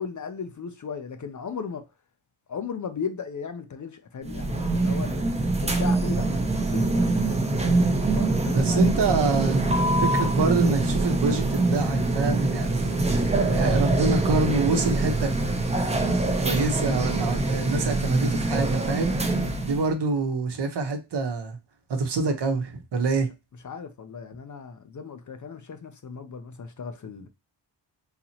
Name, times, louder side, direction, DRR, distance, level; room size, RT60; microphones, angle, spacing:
voice 1, 0.0-1.8 2.5-7.8 8.1-8.8 23.6-27.3, left 6 dB, 40° left, 0.5 m, -36 dB
sound 1, 4.2-19.9, right 2 dB, 15° right, 0.6 m, -24 dB
voice 2, 8.5-9.6 10.0-15.3 16.4-19.1 19.7-21.6 21.9-23.3, right 4 dB, 60° right, 0.9 m, -26 dB
4.0 x 2.9 x 2.8 m
wide cardioid pair, 105°, 47 cm